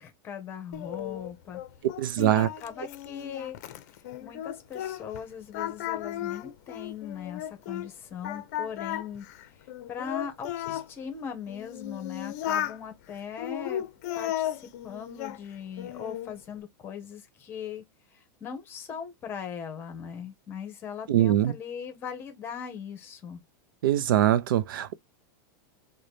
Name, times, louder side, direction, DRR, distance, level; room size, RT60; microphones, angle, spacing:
voice 1, 0.0-1.6 2.2-3.6 3.9-9.3 9.9-13.9 14.2-14.5 14.8-17.8 18.1-23.4, left 7 dB, 20° left, 0.9 m, -39 dB
Singing, 0.7-5.2 5.5-7.9 8.2-10.9 11.5-12.8 13.4-15.4 15.8-16.4, left 12 dB, 50° left, 0.5 m, -35 dB
voice 2, 2.0-2.5 21.1-21.5 23.8-24.9, right 12 dB, 85° right, 0.5 m, -23 dB
3.9 x 2.1 x 3.2 m
supercardioid pair, 165°, 11 cm